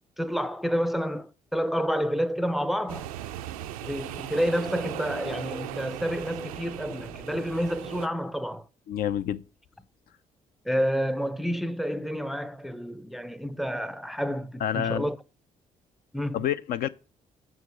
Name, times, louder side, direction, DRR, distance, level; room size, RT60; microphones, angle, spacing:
voice 1, 0.2-3.1 3.8-8.7 10.7-15.2 16.1-16.4, equal, ahead, 0.5 m, -29 dB
sound 1, 2.9-8.1, right 12 dB, 75° right, 0.4 m, -38 dB
voice 2, 8.9-9.4 14.6-15.1 16.3-16.9, left 10 dB, 50° left, 0.4 m, -28 dB
6.3 x 4.6 x 6.3 m
figure-of-eight pair, 45°, 19 cm